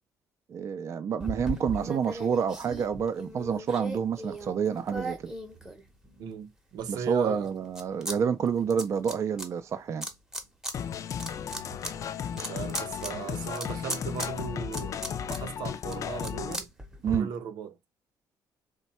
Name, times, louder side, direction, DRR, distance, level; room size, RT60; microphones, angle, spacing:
voice 1, 0.5-5.3 6.9-10.1 17.0-17.3, right 7 dB, 45° right, 0.4 m, -28 dB
sound 1, 1.2-6.3 6.8-8.2 8.4-9.5 10.0-10.7 11.1-17.2, right 1 dB, 5° right, 0.8 m, -38 dB
voice 2, 6.2-7.5 12.3-16.7 17.1-17.8, right 7 dB, 85° right, 0.7 m, -37 dB
sound 2, 10.7-16.6, left 8 dB, 50° left, 0.4 m, -35 dB
3.2 x 2.2 x 4.1 m
cardioid pair, 120°, 7 cm